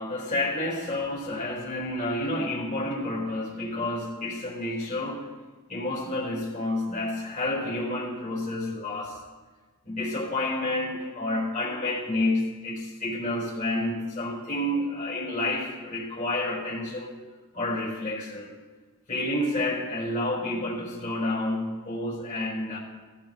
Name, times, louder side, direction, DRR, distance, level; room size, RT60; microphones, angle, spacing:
voice 1, 0.0-5.3 5.7-9.2 9.8-17.1 17.5-18.5 19.1-22.8, left 1 dB, 35° left, -6 dB, 4.0 m, -29 dB
20.5 x 15.5 x 2.2 m, 1.3 s
head